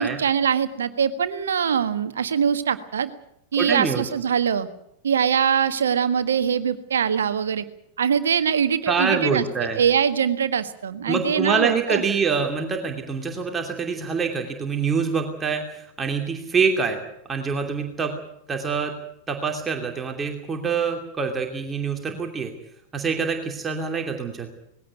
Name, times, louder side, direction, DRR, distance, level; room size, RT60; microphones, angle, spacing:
voice 1, 0.0-3.1 3.5-4.7 5.0-7.6 8.0-12.0, right 7 dB, 65° right, 12 dB, 1.6 m, -23 dB
voice 2, 3.6-4.0 8.9-9.8 11.1-17.0 17.3-18.1 18.5-18.9 19.3-22.5 22.9-24.5, right 5 dB, 20° right, 3 dB, 2.8 m, -25 dB
20.0 x 17.0 x 9.3 m, 0.75 s
figure-of-eight pair, 90°, 0 cm